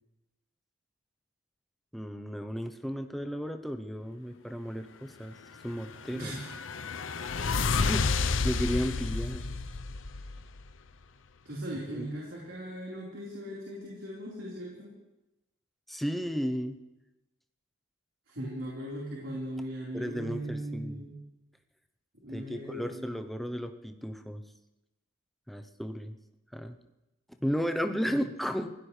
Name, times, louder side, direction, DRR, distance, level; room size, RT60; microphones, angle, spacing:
voice 1, 1.9-5.4 5.6-6.3 7.7-9.4 11.7-12.1 15.9-16.8 19.9-21.0 22.3-24.4 25.5-26.2 26.5-26.8 27.4-28.7, equal, ahead, 6 dB, 0.8 m, -34 dB
sound 1, 5.8-10.7, left 4 dB, 75° left, 0.7 m, -31 dB
voice 2, 6.1-6.5 11.4-14.9 18.3-21.2 22.1-23.2 28.1-28.2, right 1 dB, 75° right, -5 dB, 4.3 m, -39 dB
26.0 x 16.5 x 3.3 m, 0.97 s
head